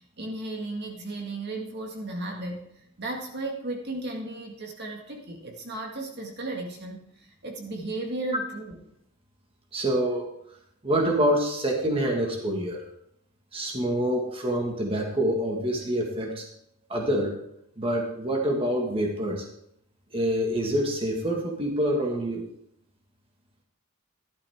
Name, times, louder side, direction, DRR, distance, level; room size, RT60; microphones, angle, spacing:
voice 1, 0.2-2.6 3.0-7.0 7.4-8.8, right 2 dB, 50° right, 1 dB, 1.8 m, -34 dB
voice 2, 9.7-10.3 10.8-12.8 13.5-16.4 16.9-17.4 17.8-19.5 20.1-22.4, right 1 dB, 25° right, 1 dB, 1.7 m, -26 dB
14.5 x 12.0 x 3.6 m, 0.77 s
head